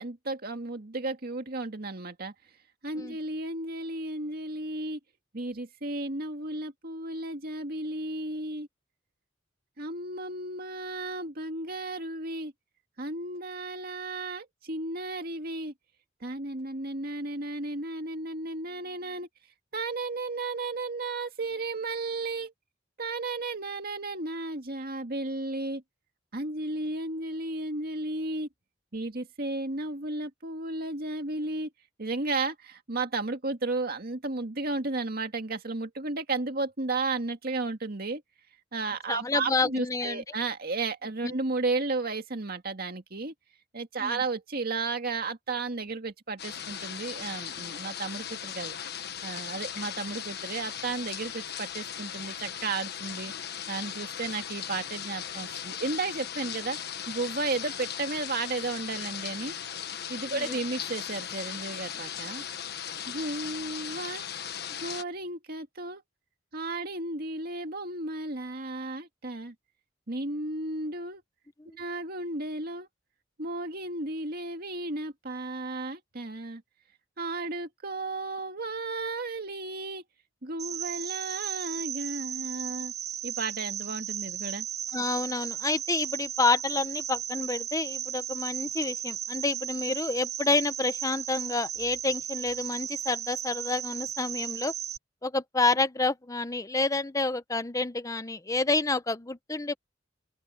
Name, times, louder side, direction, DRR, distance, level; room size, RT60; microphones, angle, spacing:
voice 1, 0.0-2.3 2.8-5.0 5.3-8.7 9.8-12.5 13.0-15.7 16.2-19.3 19.7-22.5 23.0-25.8 26.3-28.5 28.9-31.7 32.0-38.2 38.7-43.3 43.7-48.8 49.2-53.3 53.7-56.8 57.1-59.6 60.1-62.4 63.1-64.2 64.8-66.0 66.5-69.5 70.1-71.2 71.7-72.9 73.4-76.6 77.2-80.0 80.4-82.9 83.2-84.7, right 3 dB, 55° right, 2.0 m, -33 dB
voice 2, 39.1-40.2 41.2-41.3 44.0-44.2 60.3-60.5 84.9-94.7 95.2-99.8, left 3 dB, 20° left, 0.8 m, -29 dB
sound 1, 46.4-65.0, left 9 dB, 60° left, 1.4 m, -38 dB
Cricket, 80.6-95.0, right 10 dB, 35° right, 0.5 m, -35 dB
open air
head